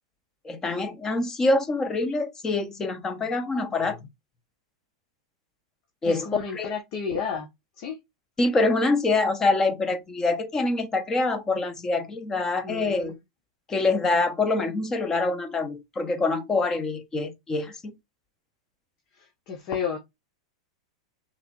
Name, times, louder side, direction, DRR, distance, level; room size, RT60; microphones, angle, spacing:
voice 1, 0.4-4.1 6.0-6.3 6.5-6.7 8.4-13.2 13.7-18.0, left 3 dB, 20° left, 1.1 m, -25 dB
voice 2, 6.0-7.5 7.8-8.0 12.6-13.1 19.2-20.0, left 6 dB, 50° left, 1.4 m, -32 dB
5.7 x 3.5 x 2.6 m
hypercardioid pair, 100°, 3 cm